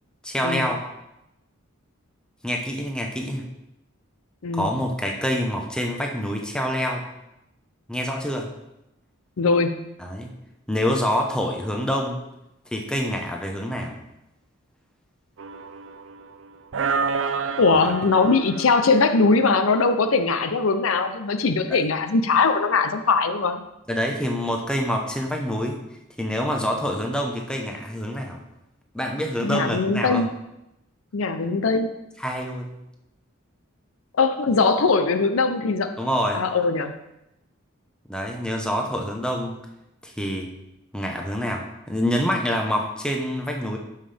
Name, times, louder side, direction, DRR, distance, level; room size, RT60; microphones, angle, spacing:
voice 1, 0.2-0.8 2.4-3.4 4.5-7.0 7.9-8.5 10.0-10.3 10.7-12.2 12.7-14.0 21.7-21.8 23.9-25.8 26.2-28.4 28.9-30.2 32.2-32.8 36.0-36.4 38.1-39.6 40.0-40.5 40.9-43.8, equal, 5° left, 1 dB, 0.9 m, -26 dB
voice 2, 9.4-9.9 17.6-23.6 29.4-30.3 31.1-31.9 34.1-36.0 36.3-37.0, left 4 dB, 80° left, 9 dB, 0.6 m, -21 dB
sound 1, 15.4-16.3 16.7-19.5, right 5 dB, 65° right, 0.5 m, -29 dB
12.0 x 5.7 x 3.4 m, 0.89 s
head